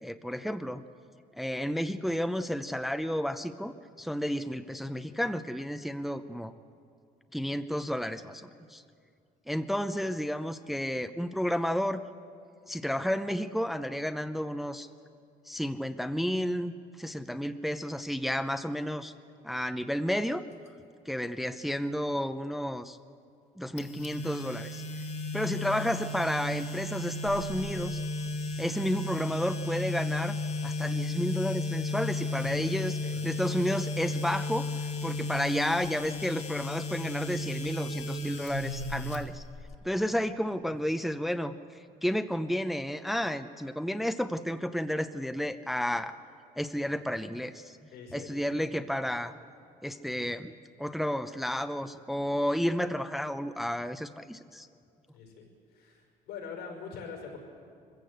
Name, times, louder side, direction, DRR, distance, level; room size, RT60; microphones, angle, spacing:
voice 1, 0.0-0.8 1.4-6.5 7.3-8.8 9.5-12.0 12.7-14.9 15.5-19.1 19.4-20.4 21.1-23.0 23.6-24.8 25.3-28.0 28.6-30.4 30.6-33.0 33.2-34.7 35.0-39.4 39.8-41.5 42.0-46.2 46.6-47.8 48.1-49.3 49.8-54.7, equal, ahead, 10 dB, 0.6 m, -31 dB
sound 1, 23.8-39.7, left 2 dB, 40° left, 1.8 m, -34 dB
voice 2, 32.4-33.2 40.6-40.7 47.9-48.5 55.1-55.5 55.7-57.4, left 5 dB, 85° left, 1 dB, 5.1 m, -44 dB
22.5 x 15.0 x 8.0 m, 2.3 s
cardioid pair, 110°, 17 cm